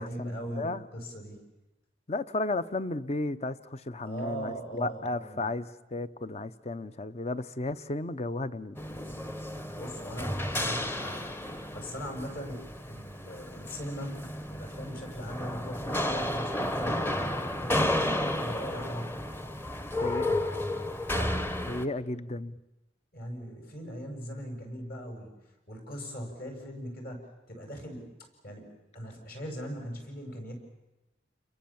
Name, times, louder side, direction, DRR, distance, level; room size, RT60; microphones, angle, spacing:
voice 1, 0.0-1.4 4.0-5.5 9.8-11.3 11.7-17.0 17.6-19.2 21.1-21.4 23.1-25.3 25.7-28.1 28.4-30.5, equal, 55° left, 4 dB, 6.9 m, -40 dB
voice 2, 2.1-8.8 20.0-20.4 21.6-22.6, left 2 dB, 35° left, 13 dB, 0.8 m, -34 dB
sound 1, 8.8-21.9, left 1 dB, 15° left, 1.0 m, -32 dB
30.0 x 22.5 x 7.3 m, 0.99 s
head